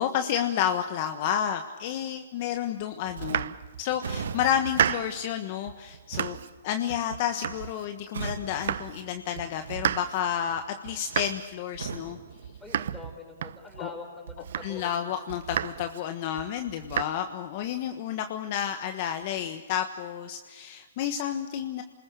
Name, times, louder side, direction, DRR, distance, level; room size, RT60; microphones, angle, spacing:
voice 1, 0.0-6.4 6.6-12.2 13.8-13.9 14.6-21.8, left 9 dB, 40° left, 7 dB, 1.3 m, -30 dB
Domestic sounds home sounds, 3.1-4.0 4.4-5.3 5.7-6.6 6.9-8.0 8.3-9.1 9.3-13.9 14.3-15.0 15.3-16.0 16.4-17.0, right 9 dB, 65° right, 0.8 m, -33 dB
sound 1, 4.0-6.0 8.1-9.8 11.8-13.4, right 5 dB, 80° right, 1.9 m, -40 dB
voice 2, 12.6-15.1, left 3 dB, 5° left, 3 dB, 4.5 m, -45 dB
28.0 x 20.5 x 6.8 m, 1.3 s
hypercardioid pair, 155°, 0 cm